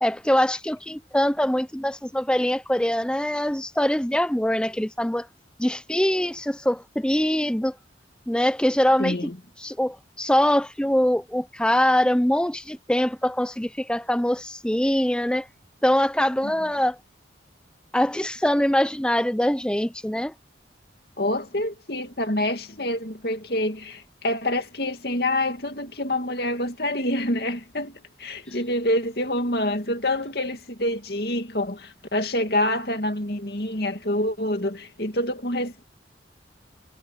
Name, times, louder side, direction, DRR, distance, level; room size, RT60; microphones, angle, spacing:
voice 1, 0.0-5.3 5.6-7.7 8.3-9.3 9.6-15.5 15.8-17.0 17.9-20.3, equal, 5° left, 0.6 m, -23 dB
voice 2, 9.0-9.4 16.4-16.5 21.2-27.9 28.2-35.9, left 1 dB, 55° left, 2.6 m, -27 dB
head